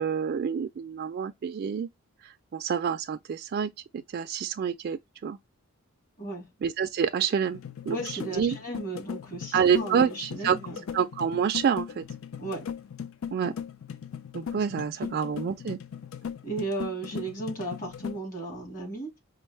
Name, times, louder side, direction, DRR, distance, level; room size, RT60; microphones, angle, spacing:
voice 1, 0.0-1.9 2.2-5.4 6.6-7.6 7.9-8.6 9.5-10.6 10.9-12.0 13.3-13.5 14.3-15.8, right 7 dB, 50° right, 0.3 m, -28 dB
voice 2, 6.2-6.5 7.9-10.8 12.4-12.7 14.7-14.8 16.4-19.2, right 2 dB, 40° left, 1.8 m, -35 dB
sound 1, 7.5-18.2, left 7 dB, 70° left, 0.4 m, -38 dB
5.1 x 2.0 x 3.2 m
head